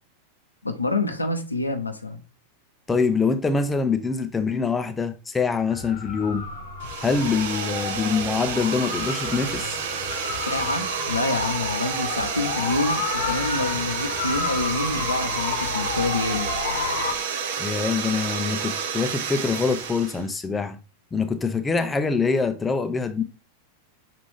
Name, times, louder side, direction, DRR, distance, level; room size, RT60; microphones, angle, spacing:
voice 1, 0.6-2.2 10.5-16.5, left 2 dB, 85° left, 0.7 m, -27 dB
voice 2, 2.9-6.5 7.0-9.8 17.6-20.8 21.1-23.2, left 4 dB, 15° left, 0.5 m, -24 dB
sound 1, 5.7-17.1, left 5 dB, 60° left, 0.9 m, -31 dB
sound 2, 6.8-20.3, right 7 dB, 55° right, 0.6 m, -30 dB
6.0 x 2.5 x 3.5 m
figure-of-eight pair, 90°, 0 cm